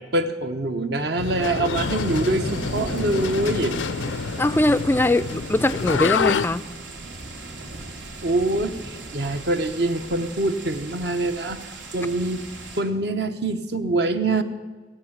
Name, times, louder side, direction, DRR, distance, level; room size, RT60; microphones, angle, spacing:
voice 1, 0.0-3.7 8.2-11.6 11.9-12.4 12.8-14.4, right 2 dB, 60° right, 8 dB, 0.9 m, -24 dB
sound 1, 1.2-6.5, left 6 dB, 90° left, 0.5 m, -28 dB
sound 2, 1.7-12.8, right 2 dB, 75° right, 2.6 m, -36 dB
voice 2, 4.4-6.6, left 1 dB, 10° left, 15 dB, 0.3 m, -21 dB
17.0 x 8.8 x 7.3 m, 1.5 s
head